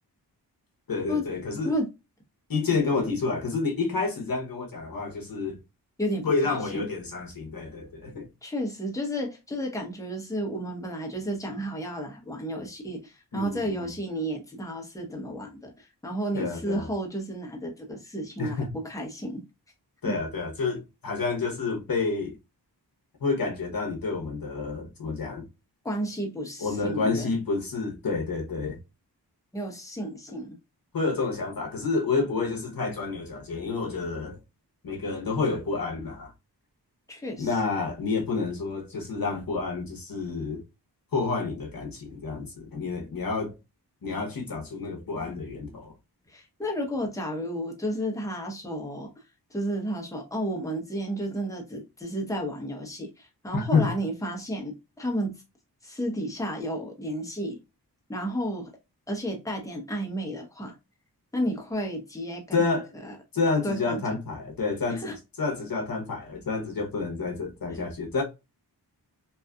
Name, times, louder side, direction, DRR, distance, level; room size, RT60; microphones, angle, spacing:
voice 1, 0.9-1.7 2.5-5.6 6.2-8.3 13.3-13.9 16.3-16.9 18.4-18.7 20.0-22.4 23.2-25.4 26.6-28.8 30.9-34.4 34.8-36.3 37.4-40.6 41.1-43.5 44.0-45.9 53.5-53.9 62.5-62.9 63.3-68.2, left 4 dB, 55° left, 0.9 m, -29 dB
voice 2, 6.0-6.8 8.4-19.4 20.0-20.1 25.8-27.3 29.5-30.6 37.1-37.5 46.3-49.1 49.5-55.3 55.8-57.6 58.1-58.7 59.1-60.8 61.3-63.2 63.6-64.2 64.9-65.2 67.7-67.8, equal, 10° left, 0.9 m, -32 dB
2.7 x 2.3 x 2.3 m
cardioid pair, 40°, 41 cm